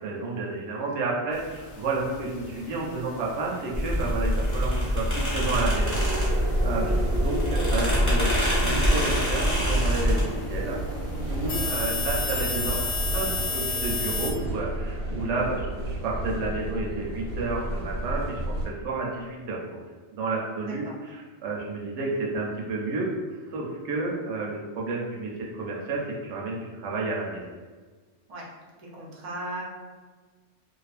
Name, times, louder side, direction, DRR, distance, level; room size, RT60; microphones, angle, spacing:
voice 1, 0.0-10.8 11.3-19.8 20.1-23.1 23.5-27.4, right 3 dB, 70° right, -3 dB, 0.8 m, -31 dB
sound 1, 1.3-14.3, left 4 dB, 70° left, 0.8 m, -36 dB
sound 2, 3.7-10.2, equal, 10° left, 0.8 m, -24 dB
sound 3, 5.7-18.7, right 1 dB, 90° right, 1.1 m, -32 dB
voice 2, 11.4-11.9 20.6-20.9 28.3-28.4 28.8-29.6, right 1 dB, 55° right, -3 dB, 0.4 m, -39 dB
2.5 x 2.4 x 2.4 m, 1.4 s
omnidirectional pair, 1.3 m